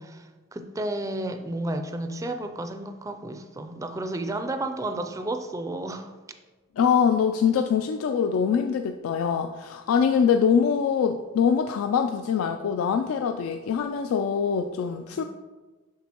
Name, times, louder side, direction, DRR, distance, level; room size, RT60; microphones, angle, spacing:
voice 1, 0.0-6.1 15.1-15.2, right 1 dB, 15° right, 7 dB, 0.3 m, -32 dB
voice 2, 6.8-15.2, left 7 dB, 80° left, 6 dB, 0.3 m, -23 dB
10.5 x 3.8 x 2.9 m, 1.3 s
head